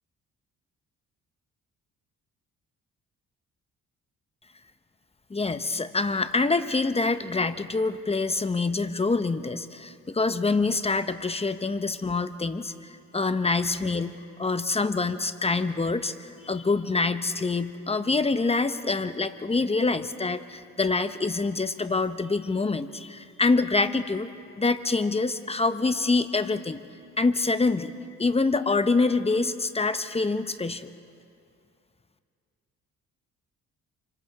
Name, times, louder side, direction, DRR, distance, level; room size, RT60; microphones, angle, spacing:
voice 1, 5.3-24.3 24.6-26.8 27.2-27.9 28.2-30.9, left 3 dB, 20° left, 10 dB, 1.0 m, -26 dB
29.0 x 24.5 x 4.8 m, 2.4 s
cardioid pair, 90°, 30 cm